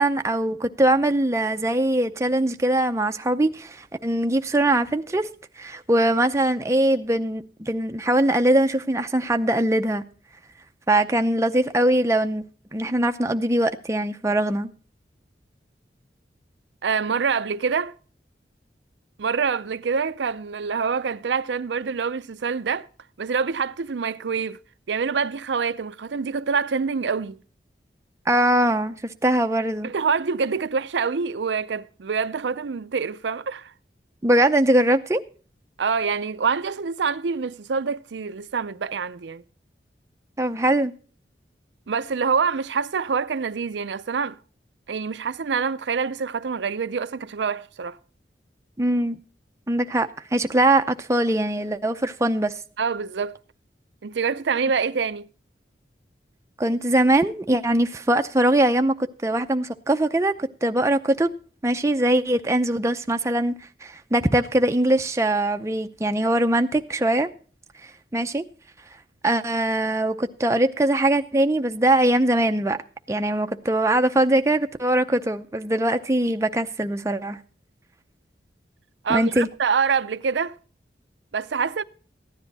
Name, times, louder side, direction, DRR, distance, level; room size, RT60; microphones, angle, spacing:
voice 1, 0.0-5.3 5.6-10.0 10.9-12.4 12.7-14.7 28.3-29.9 34.2-35.2 40.4-40.9 48.8-49.2 49.7-52.6 56.6-61.3 61.6-63.5 63.8-67.3 67.8-68.5 69.2-72.8 73.1-77.4 79.1-79.5, right 1 dB, 15° right, 0.6 m, -22 dB
voice 2, 16.8-17.9 19.2-22.9 23.2-24.6 24.9-27.4 29.8-33.7 35.8-39.4 41.9-44.4 44.9-48.0 52.8-53.4 54.0-55.3 79.0-80.6 81.3-81.8, right 5 dB, 85° right, 0.5 m, -26 dB
14.5 x 10.0 x 4.0 m
head